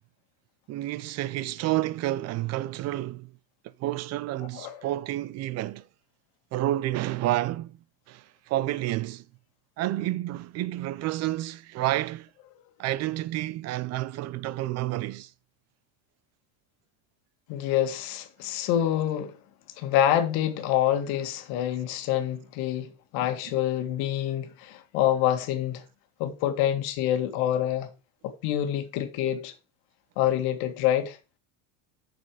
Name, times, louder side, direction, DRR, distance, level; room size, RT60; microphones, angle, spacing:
voice 1, 0.7-3.3 3.8-5.8 6.5-7.8 8.1-9.2 9.8-12.3 12.8-15.3 23.5-23.6, right 15 dB, 35° right, 0.6 m, -30 dB
voice 2, 17.5-19.4 19.8-25.8 26.2-27.9 28.2-29.5 30.2-31.2, left 11 dB, 60° left, 1.9 m, -26 dB
8.8 x 6.9 x 4.9 m
supercardioid pair, 140°, 43 cm